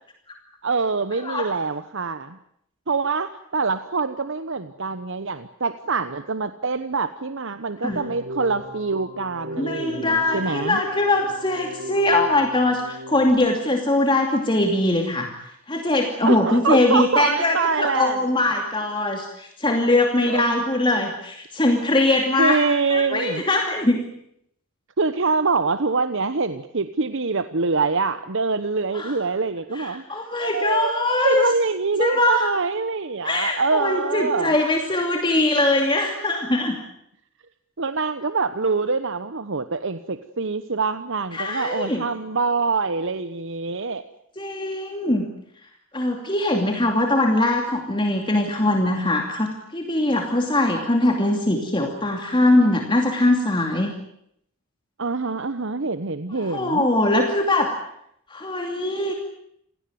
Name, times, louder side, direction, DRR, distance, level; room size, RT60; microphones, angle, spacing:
voice 1, 0.6-2.4 2.9-10.8 16.2-18.3 20.3-20.5 22.4-23.4 25.0-30.0 30.4-34.5 37.8-44.0 55.0-56.9, right 4 dB, 60° right, 11 dB, 1.0 m, -25 dB
Keyboard (musical), 7.9-13.3, equal, 40° right, 6.3 m, -37 dB
voice 2, 9.6-15.3 15.7-22.6 22.9-24.0 28.9-29.2 29.7-31.4 32.0-32.5 33.2-36.8 41.3-42.1 44.4-45.2 45.9-53.9 56.3-57.7 58.3-59.1, left 2 dB, 20° left, 3 dB, 2.6 m, -21 dB
27.5 x 17.5 x 9.4 m, 0.73 s
head